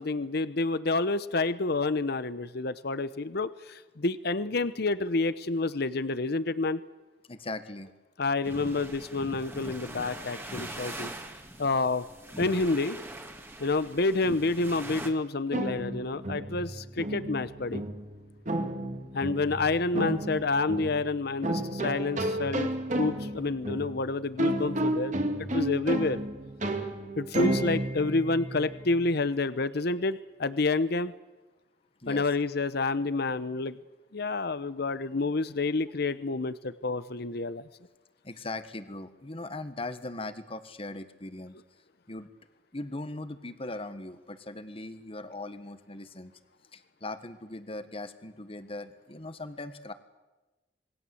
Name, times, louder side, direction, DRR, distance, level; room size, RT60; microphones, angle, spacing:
voice 1, 0.0-6.8 8.2-11.1 11.6-12.0 12.4-13.0 13.6-17.8 19.1-26.2 27.2-31.1 32.1-33.8 34.1-37.6, left 3 dB, 60° left, 14 dB, 0.9 m, -29 dB
voice 2, 7.3-7.9 32.0-32.3 38.2-41.6 42.1-42.3 42.7-46.3 46.7-49.9, left 2 dB, 30° left, 10 dB, 1.6 m, -39 dB
sound 1, 8.4-15.1, right 1 dB, 10° right, 2.3 m, -42 dB
sound 2, 15.5-29.1, right 1 dB, 40° right, 2.3 m, -32 dB
27.0 x 21.5 x 7.9 m, 1.2 s
head